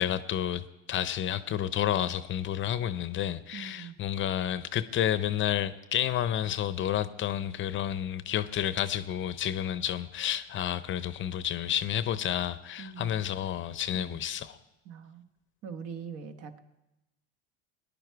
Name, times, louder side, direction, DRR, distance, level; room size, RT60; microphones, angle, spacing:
voice 1, 0.0-14.6, left 11 dB, 40° left, 0.7 m, -30 dB
voice 2, 3.5-3.9 12.8-13.2 13.9-14.2 14.8-15.2 15.6-16.6, right 6 dB, 50° right, 1.2 m, -42 dB
19.0 x 10.5 x 4.7 m
supercardioid pair, 100°, 31 cm